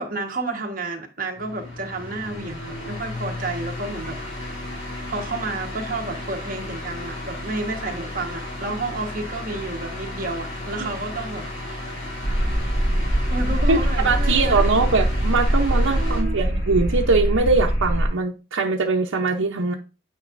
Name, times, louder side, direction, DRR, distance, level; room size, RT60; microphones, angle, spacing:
voice 1, 0.0-4.6 5.1-11.9 13.3-14.7 15.9-16.4, right 2 dB, 45° right, 1.3 m, -31 dB
sound 1, 1.3-16.2, left 1 dB, 75° left, 3.0 m, -34 dB
sound 2, 12.2-18.1, equal, 50° left, 3.6 m, -22 dB
voice 2, 13.7-19.7, right 4 dB, 85° right, 0.8 m, -22 dB
9.5 x 5.5 x 2.6 m
head